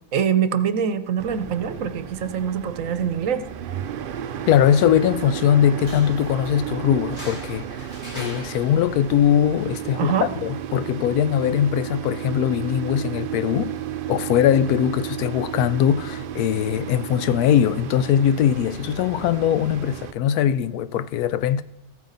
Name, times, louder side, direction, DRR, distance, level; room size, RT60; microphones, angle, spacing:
voice 1, 0.1-3.4 10.0-10.3, right 8 dB, 65° right, 1.0 m, -24 dB
sound 1, 1.2-20.1, right 10 dB, 85° right, 0.4 m, -33 dB
voice 2, 4.5-7.9 8.1-13.8 14.1-21.6, left 9 dB, 90° left, 1.1 m, -21 dB
sound 2, 5.7-12.7, left 1 dB, 45° left, 2.4 m, -44 dB
14.5 x 9.2 x 3.9 m
omnidirectional pair, 1.6 m